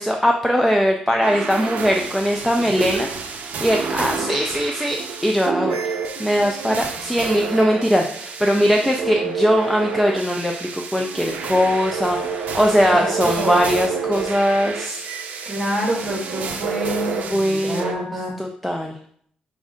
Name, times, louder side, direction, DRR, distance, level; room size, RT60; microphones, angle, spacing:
voice 1, 0.0-3.1 3.6-5.9 6.2-15.0 17.3-18.1 18.4-19.0, equal, ahead, 2 dB, 0.3 m, -20 dB
sound 1, 1.2-17.9, right 5 dB, 65° right, 0.5 m, -29 dB
voice 2, 2.6-3.0 12.9-13.6 15.4-18.3, right 1 dB, 20° right, -2 dB, 1.4 m, -27 dB
5.1 x 2.4 x 3.6 m, 0.62 s
wide cardioid pair, 145°, 3 cm